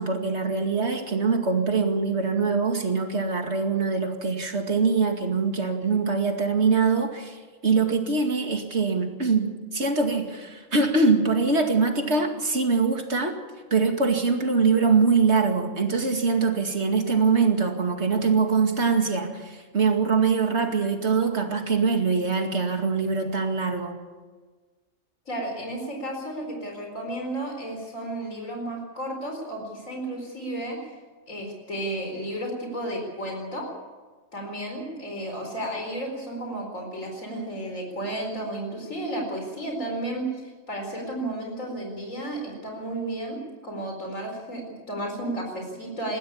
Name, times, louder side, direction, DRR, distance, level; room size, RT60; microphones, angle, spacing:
voice 1, 0.0-13.4 13.7-23.9, right 4 dB, 60° right, 4 dB, 2.5 m, -23 dB
voice 2, 25.3-30.8 31.3-33.7 34.3-40.3 40.7-46.2, right 1 dB, 90° left, 1 dB, 4.8 m, -33 dB
21.0 x 15.5 x 8.6 m, 1.4 s
omnidirectional pair, 1.3 m